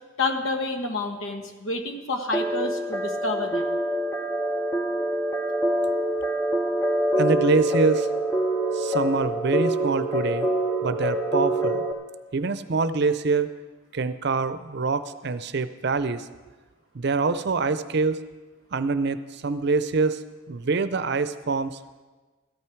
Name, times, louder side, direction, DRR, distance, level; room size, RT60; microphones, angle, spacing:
voice 1, 0.2-3.7, left 2 dB, 80° left, 5 dB, 1.3 m, -29 dB
sound 1, 2.3-11.9, right 1 dB, 15° left, 0.8 m, -25 dB
voice 2, 7.1-8.1 8.7-10.5 10.8-11.8 12.3-13.5 13.9-16.2 16.9-18.2 18.7-20.2 20.5-21.8, right 4 dB, 55° right, 13 dB, 0.6 m, -25 dB
14.0 x 12.0 x 4.5 m, 1.3 s
head